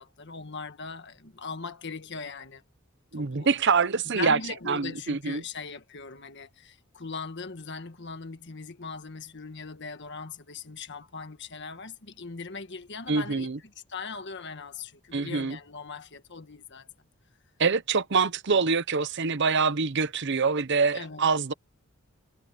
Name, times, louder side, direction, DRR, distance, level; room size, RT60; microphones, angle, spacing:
voice 1, 0.0-2.6 3.2-3.6 4.1-16.9 20.9-21.3, left 4 dB, 55° left, 1.6 m, -40 dB
voice 2, 3.1-4.4 4.7-5.4 13.1-13.6 15.1-15.6 17.6-21.5, right 5 dB, 55° right, 0.9 m, -25 dB
head